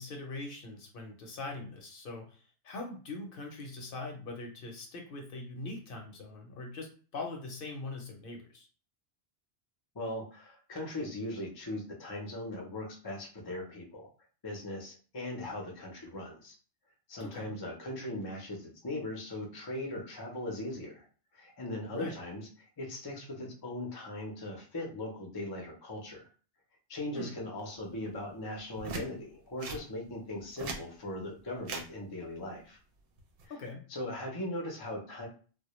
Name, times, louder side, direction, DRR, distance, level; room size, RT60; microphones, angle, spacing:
voice 1, 0.0-8.7 17.2-17.5 21.8-22.1 27.1-27.3 33.5-33.9, left 2 dB, 60° left, 1 dB, 0.7 m, -42 dB
voice 2, 9.9-14.1 14.4-16.5 17.1-21.0 21.3-26.3 26.9-32.8 33.9-35.3, left 1 dB, 30° left, 0 dB, 0.4 m, -39 dB
sound 1, 28.8-29.1 29.6-29.8 30.4-30.8 31.6-31.9 33.2-33.4, right 3 dB, 65° right, 0.7 m, -39 dB
2.1 x 2.1 x 2.9 m, 0.39 s
omnidirectional pair, 1.1 m